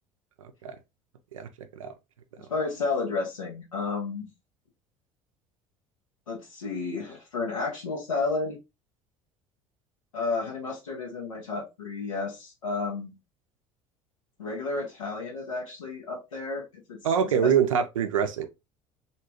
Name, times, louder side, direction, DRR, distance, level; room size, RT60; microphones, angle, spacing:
voice 1, 0.4-0.8 1.3-1.9 17.0-18.5, right 7 dB, 85° right, 0.5 m, -25 dB
voice 2, 2.5-4.3 6.3-8.6 10.1-13.2 14.4-17.0 17.4-17.5, left 3 dB, 85° left, 1.1 m, -32 dB
2.8 x 2.3 x 2.8 m
hypercardioid pair, 65°, 17 cm